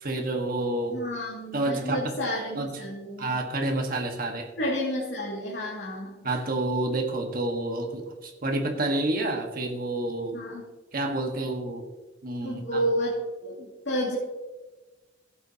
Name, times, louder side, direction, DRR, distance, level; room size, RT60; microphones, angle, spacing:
voice 1, 0.0-1.0 1.5-2.1 2.5-2.8 3.2-4.5 6.2-10.4 10.9-11.9 12.2-12.8, right 2 dB, 50° right, 3 dB, 1.4 m, -29 dB
voice 2, 0.9-3.4 4.6-6.3 10.3-10.6 12.4-14.2, equal, 75° left, -5 dB, 2.3 m, -31 dB
15.0 x 8.6 x 2.8 m, 1.2 s
head